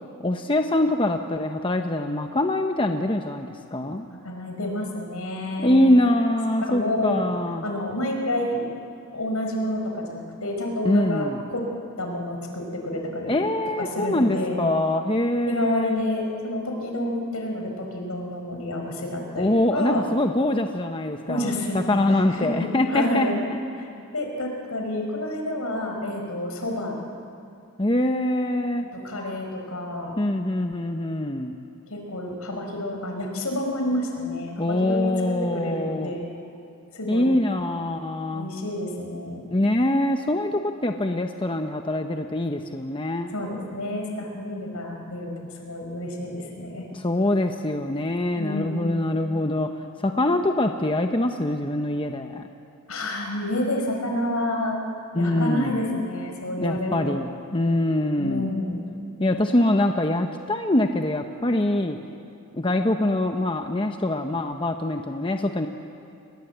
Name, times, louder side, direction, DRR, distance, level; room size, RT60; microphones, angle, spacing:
voice 1, 0.2-4.1 5.6-7.6 10.8-11.4 13.3-16.0 19.3-23.3 27.8-28.9 30.2-31.6 34.6-36.1 37.1-38.5 39.5-43.3 46.9-52.4 55.1-55.8 56.6-58.5 59.2-62.0 62.5-65.7, left 1 dB, 25° left, 5 dB, 0.9 m, -24 dB
voice 2, 4.2-5.9 6.6-7.2 7.6-8.6 9.1-11.6 12.0-13.3 13.8-14.6 15.5-20.0 21.3-23.4 23.8-27.0 29.0-30.1 31.9-36.2 36.9-37.3 38.3-39.4 43.3-46.9 48.4-48.9 52.9-54.8 55.2-57.2 58.2-58.8, left 1 dB, 75° left, 2 dB, 4.9 m, -29 dB
30.0 x 21.5 x 8.1 m, 2.5 s
head